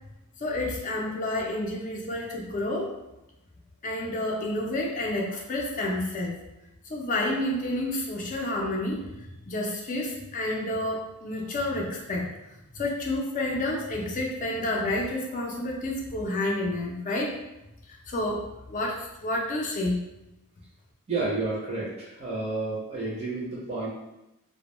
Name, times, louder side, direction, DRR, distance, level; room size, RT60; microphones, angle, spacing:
voice 1, 0.4-2.9 3.8-6.4 6.8-12.3 12.7-17.3 17.9-20.0, left 1 dB, 35° left, -1 dB, 0.4 m, -30 dB
voice 2, 21.1-23.9, right 3 dB, 30° right, -6 dB, 0.5 m, -30 dB
2.1 x 2.1 x 2.9 m, 0.94 s
head